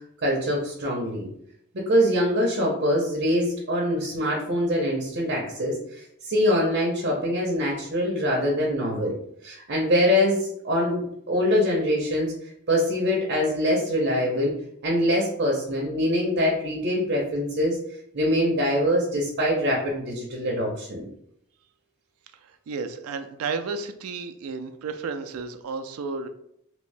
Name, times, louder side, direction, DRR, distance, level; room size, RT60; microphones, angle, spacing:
voice 1, 0.2-1.3 1.7-9.2 9.4-11.0 11.3-12.3 12.7-14.5 14.8-17.8 18.1-21.1, equal, 50° right, -2 dB, 0.6 m, -24 dB
voice 2, 22.7-26.3, right 4 dB, 85° right, 8 dB, 0.4 m, -32 dB
2.9 x 2.7 x 3.2 m, 0.73 s
head